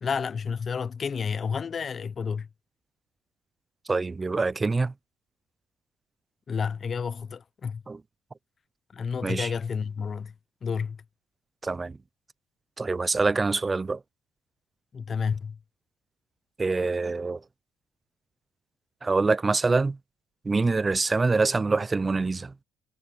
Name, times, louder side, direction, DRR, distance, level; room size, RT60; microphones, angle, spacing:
voice 1, 0.0-2.5 6.5-7.8 8.9-10.3 10.6-11.0 14.9-15.6, left 6 dB, 35° left, 0.6 m, -30 dB
voice 2, 3.9-4.9 7.9-8.0 9.2-9.5 11.6-12.0 12.8-14.0 16.6-17.4 19.0-20.0 20.4-22.5, right 3 dB, 20° right, 0.4 m, -25 dB
cardioid pair, 110°, 0 cm